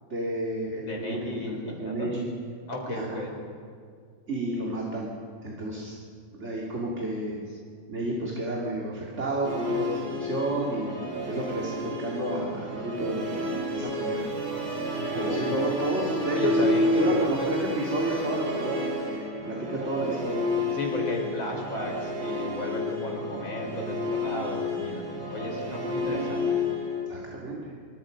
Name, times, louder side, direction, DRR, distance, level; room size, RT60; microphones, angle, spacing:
voice 1, 0.1-2.3 2.9-3.2 4.3-5.1 5.4-5.9 6.3-7.4 7.9-11.0 11.2-14.2 15.1-16.7 17.0-20.4 27.1-27.7, right 1 dB, 35° right, -3 dB, 3.0 m, -31 dB
voice 2, 0.9-2.1 2.7-3.4 14.8-15.9 16.3-17.5 20.7-26.6, left 1 dB, 85° left, 1 dB, 5.3 m, -34 dB
Musical instrument, 9.4-27.1, left 1 dB, 85° right, 3.6 m, -30 dB
26.0 x 25.0 x 5.3 m, 2.1 s
omnidirectional pair, 2.1 m